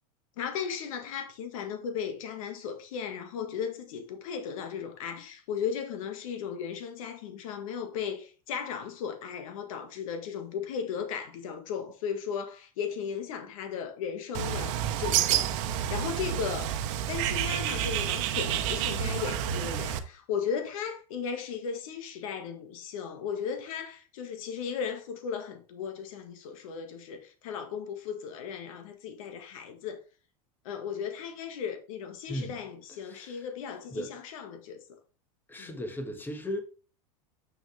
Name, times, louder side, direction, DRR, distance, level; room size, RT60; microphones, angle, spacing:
voice 1, 0.4-16.7 17.1-30.0 30.6-34.8 35.6-35.7, left 7 dB, 75° left, 1.8 m, -36 dB
Bird, 14.3-20.0, right 10 dB, 65° right, 1.0 m, -29 dB
voice 2, 32.3-32.6 33.1-33.4 33.9-34.1 35.5-36.6, equal, 10° left, 1.4 m, -36 dB
7.0 x 6.2 x 3.4 m
supercardioid pair, 125°, 17 cm